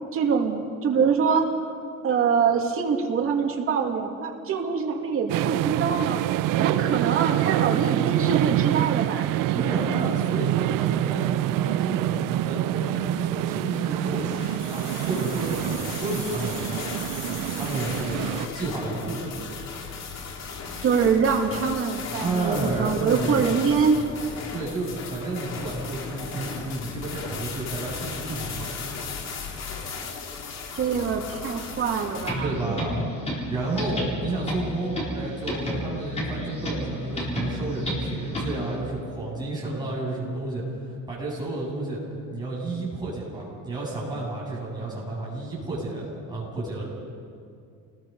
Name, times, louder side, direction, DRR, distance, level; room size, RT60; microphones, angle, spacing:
voice 1, 0.1-1.5 2.0-6.2 6.6-9.3 20.8-24.0 30.7-32.7, right 6 dB, 45° right, 2 dB, 2.3 m, -24 dB
sound 1, 5.3-18.5, right 15 dB, 90° right, 0.5 m, -26 dB
voice 2, 9.5-16.6 17.5-19.5 22.2-23.5 24.5-28.7 32.4-33.0 33.5-40.7 41.1-42.0 42.3-46.8, right 2 dB, 15° right, -6 dB, 7.6 m, -31 dB
sound 2, 13.6-32.3, left 5 dB, 55° left, 2.7 m, -36 dB
sound 3, 32.2-38.7, equal, 20° left, 4.0 m, -31 dB
28.0 x 20.0 x 5.4 m, 2.3 s
cardioid pair, 170°, 31 cm